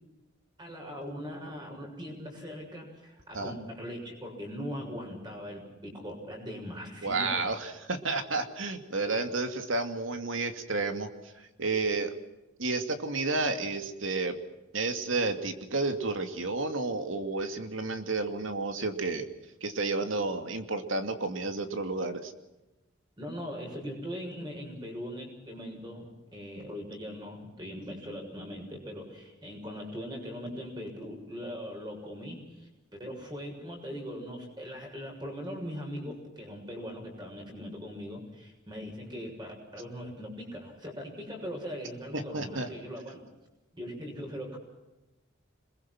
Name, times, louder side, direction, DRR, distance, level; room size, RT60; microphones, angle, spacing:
voice 1, 0.6-7.5 23.2-32.7 33.0-43.2 43.7-44.6, equal, 20° right, 1 dB, 6.9 m, -40 dB
voice 2, 7.0-11.1 11.3-12.1 12.6-14.4 14.7-19.3 19.6-22.3 42.1-42.7, right 3 dB, 85° right, 7 dB, 2.6 m, -31 dB
27.0 x 22.0 x 6.2 m, 1.0 s
head